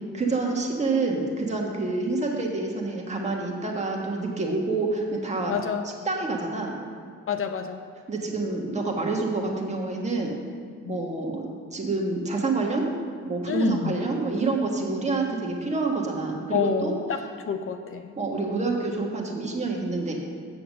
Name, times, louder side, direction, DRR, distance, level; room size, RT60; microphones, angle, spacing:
voice 1, 0.1-5.6 5.8-6.7 8.1-10.3 10.9-12.9 13.2-16.9 18.2-20.1, right 3 dB, 25° right, 0 dB, 1.4 m, -27 dB
voice 2, 5.5-5.8 7.3-7.8 10.9-11.0 13.5-13.9 16.5-17.2 17.5-18.1, left 6 dB, 45° left, 6 dB, 0.6 m, -28 dB
8.2 x 6.7 x 6.4 m, 2.2 s
cardioid pair, 90°, 30 cm